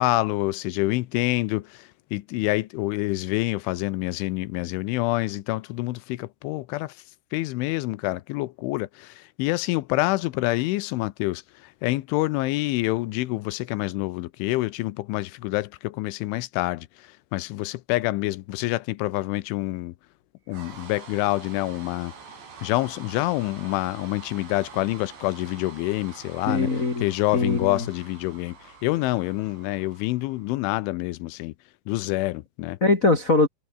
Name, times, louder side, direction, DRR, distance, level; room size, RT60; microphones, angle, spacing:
voice 1, 0.0-6.9 7.3-11.4 11.8-19.9 20.5-22.1 22.6-26.7 27.0-28.6 28.8-31.5 31.9-32.8, left 19 dB, 90° left, 3.3 m, -27 dB
sound 1, 20.5-30.8, right 5 dB, 65° right, 8.3 m, -46 dB
voice 2, 26.5-27.0 27.3-27.8 32.8-33.5, left 3 dB, 40° left, 1.2 m, -21 dB
omnidirectional pair, 5.4 m